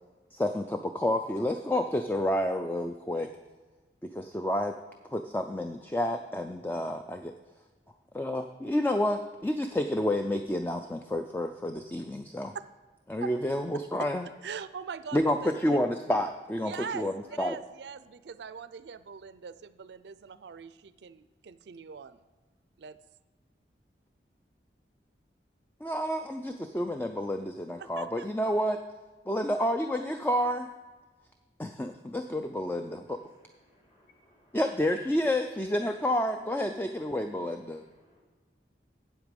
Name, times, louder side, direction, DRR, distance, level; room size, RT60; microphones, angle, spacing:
voice 1, 0.3-3.3 4.0-4.8 5.1-7.3 8.1-12.5 13.1-14.3 15.1-17.1 17.4-17.6 25.8-28.8 29.3-30.7 31.6-33.2 34.5-37.8, left 1 dB, 10° left, 6 dB, 0.3 m, -29 dB
voice 2, 14.4-15.8 16.6-22.2 22.8-23.0 27.8-28.3, right 6 dB, 75° right, 14 dB, 0.4 m, -42 dB
voice 3, 33.7-34.6 38.0-38.2, left 1 dB, 30° left, -2 dB, 2.7 m, -65 dB
9.0 x 7.9 x 5.2 m, 1.3 s
head